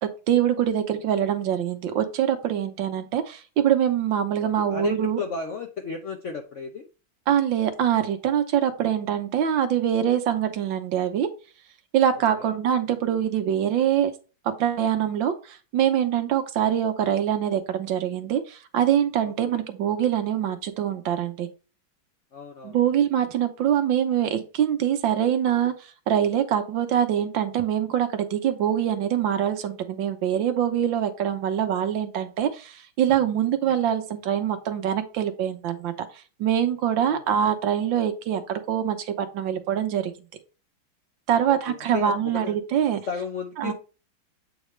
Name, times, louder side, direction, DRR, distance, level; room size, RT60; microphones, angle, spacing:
voice 1, 0.0-5.2 7.3-11.3 11.9-14.1 14.6-21.5 22.6-25.7 26.1-36.1 36.4-40.1 41.3-43.0 43.6-43.7, right 9 dB, 70° right, 8 dB, 1.5 m, -24 dB
voice 2, 4.7-6.9 12.4-12.5 19.5-19.6 22.3-22.8 37.1-37.2 41.5-41.6 41.9-42.5 43.1-43.7, left 5 dB, 60° left, 4 dB, 0.7 m, -33 dB
8.2 x 4.0 x 3.2 m, 0.34 s
omnidirectional pair, 2.2 m